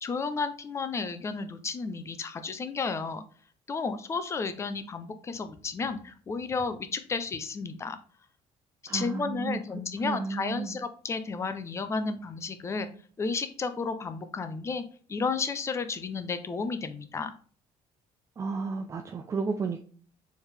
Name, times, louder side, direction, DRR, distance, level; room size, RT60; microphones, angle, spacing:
voice 1, 0.0-3.2 3.7-8.0 8.9-12.9 13.2-17.3, left 4 dB, 25° left, 10 dB, 0.6 m, -32 dB
voice 2, 8.9-9.6 10.0-10.8 18.4-19.8, right 4 dB, 25° right, 5 dB, 0.4 m, -32 dB
4.5 x 3.5 x 3.4 m, 0.43 s
cardioid pair, 135°, 11 cm